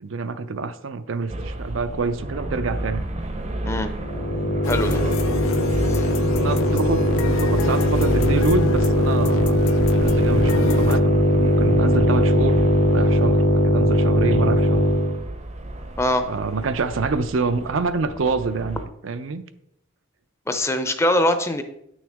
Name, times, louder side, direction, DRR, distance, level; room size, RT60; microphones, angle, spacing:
voice 1, 0.0-3.0 6.4-9.6 9.9-12.6 12.9-14.8 16.3-19.4, right 4 dB, 75° right, 11 dB, 0.5 m, -26 dB
sound 1, 1.3-18.9, right 1 dB, 35° right, 0.6 m, -31 dB
sound 2, 4.0-15.2, equal, 45° left, 0.8 m, -19 dB
sound 3, 4.6-11.0, left 6 dB, 80° left, 0.3 m, -29 dB
voice 2, 4.7-5.0 5.9-6.0 16.0-16.3 20.5-21.6, left 1 dB, 15° left, 8 dB, 0.6 m, -22 dB
8.7 x 6.3 x 3.5 m, 0.78 s
head